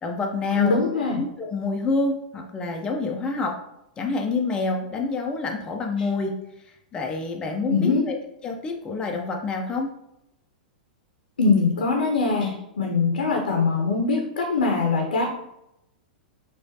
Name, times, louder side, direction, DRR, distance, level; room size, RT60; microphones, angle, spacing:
voice 1, 0.0-0.8 1.1-3.6 4.0-6.3 6.9-8.1 8.4-9.9, left 3 dB, 20° left, 1 dB, 0.5 m, -27 dB
voice 2, 0.5-1.2 7.7-8.0 11.4-15.2, left 4 dB, 75° left, 1 dB, 0.7 m, -22 dB
4.9 x 2.4 x 2.7 m, 0.84 s
figure-of-eight pair, 105°, 5 cm